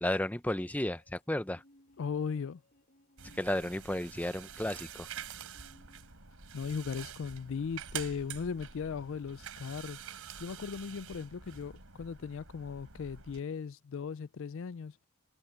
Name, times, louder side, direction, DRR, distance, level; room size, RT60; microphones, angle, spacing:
voice 1, 0.0-1.6 3.4-5.1, left 1 dB, 5° left, 0.6 m, -33 dB
sound 1, 0.8-6.6, left 1 dB, 40° left, 6.2 m, -64 dB
voice 2, 2.0-2.6 6.5-10.0 10.4-15.0, left 6 dB, 60° left, 0.4 m, -37 dB
sound 2, 3.2-13.4, right 8 dB, 70° right, 3.9 m, -47 dB
head